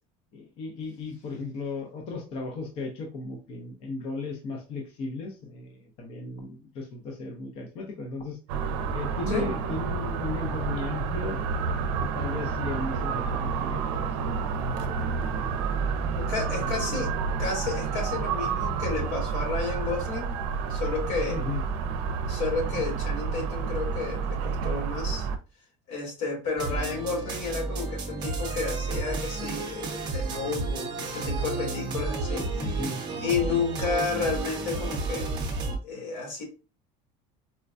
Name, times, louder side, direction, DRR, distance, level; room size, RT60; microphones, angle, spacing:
voice 1, 0.3-8.4 8.9-11.4 12.0-15.4 15.8-16.0 16.6-17.2 21.3-21.6 32.6-33.0, left 3 dB, 40° left, 0.6 m, -36 dB
sound 1, 8.5-25.4, right 5 dB, 80° right, 0.5 m, -29 dB
voice 2, 16.2-17.1 17.4-20.4 20.7-21.4 22.2-25.3 25.9-32.7 33.2-35.3 35.8-36.4, left 4 dB, 80° left, 1.7 m, -31 dB
sound 2, 26.6-35.8, right 3 dB, 30° right, 0.7 m, -31 dB
4.3 x 2.2 x 2.5 m
cardioid pair, 170°, 15 cm